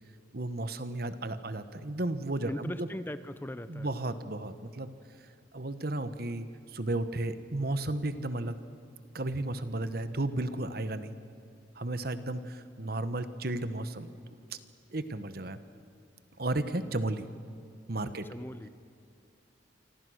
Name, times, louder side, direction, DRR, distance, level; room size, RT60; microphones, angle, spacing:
voice 1, 0.3-2.9 3.7-4.9 5.2-5.3 5.5-6.5 6.7-8.6 9.1-11.1 11.7-14.2 14.5-14.6 14.9-15.6 16.4-17.3 17.9-18.3, right 2 dB, 55° right, 11 dB, 1.2 m, -33 dB
voice 2, 2.4-3.9 18.0-18.7, left 1 dB, 10° left, 12 dB, 0.6 m, -39 dB
28.0 x 25.0 x 6.5 m, 2.5 s
head